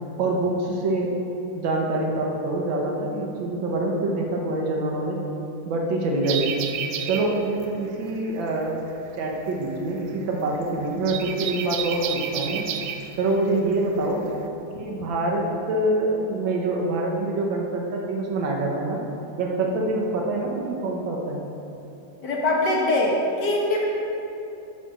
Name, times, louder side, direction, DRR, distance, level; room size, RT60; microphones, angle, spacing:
voice 1, 0.2-1.2 1.5-5.2 5.7-6.6 7.1-8.8 9.2-12.8 13.2-14.3 14.8-19.0 19.3-21.4, right 2 dB, 65° right, 0 dB, 1.8 m, -25 dB
sound 1, 6.2-14.5, right 8 dB, 85° right, 1.5 m, -32 dB
voice 2, 22.2-23.8, left 2 dB, 55° left, -2 dB, 1.8 m, -22 dB
8.1 x 7.0 x 6.3 m, 2.9 s
omnidirectional pair, 2.4 m